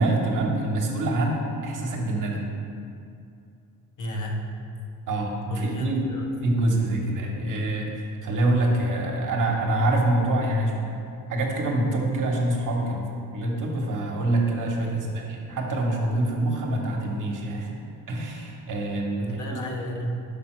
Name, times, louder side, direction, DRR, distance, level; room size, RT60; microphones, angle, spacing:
voice 1, 0.0-2.5 5.1-6.0 6.4-10.9 11.3-13.1 13.3-17.8 18.1-19.6, right 1 dB, 55° right, 0 dB, 1.1 m, -25 dB
voice 2, 4.0-4.5 5.5-6.2 14.8-15.1 19.2-20.2, equal, 50° left, 1 dB, 0.9 m, -33 dB
5.5 x 5.3 x 4.4 m, 2.5 s
cardioid pair, 110°, 37 cm